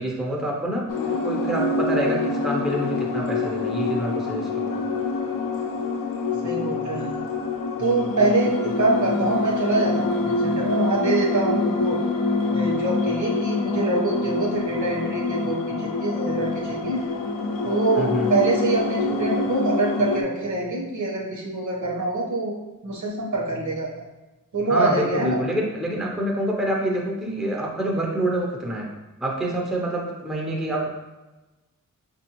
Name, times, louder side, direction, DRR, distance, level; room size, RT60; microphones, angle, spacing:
voice 1, 0.0-4.8 18.0-18.3 24.7-28.9 29.2-30.9, right 1 dB, ahead, -1 dB, 0.5 m, -27 dB
sound 1, 0.9-20.2, left 3 dB, 75° left, 0.5 m, -26 dB
voice 2, 6.4-7.1 7.8-12.0 12.5-17.0 17.6-22.5 22.8-23.9 24.5-25.4, right 2 dB, 60° right, -3 dB, 1.0 m, -25 dB
5.0 x 2.6 x 2.9 m, 1.1 s
wide cardioid pair, 125°, 34 cm